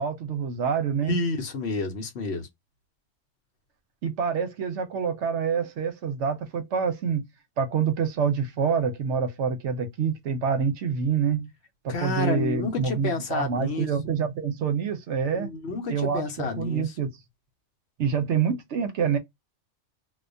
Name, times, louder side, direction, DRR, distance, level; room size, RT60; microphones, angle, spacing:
voice 1, 0.0-1.2 4.0-7.3 7.6-11.5 11.8-15.5 15.9-17.1 18.0-19.2, right 6 dB, 70° right, 0.9 m, -26 dB
voice 2, 1.0-2.5 11.9-13.9 15.3-16.9, left 3 dB, 65° left, 0.9 m, -30 dB
2.3 x 2.1 x 2.5 m
omnidirectional pair, 1.3 m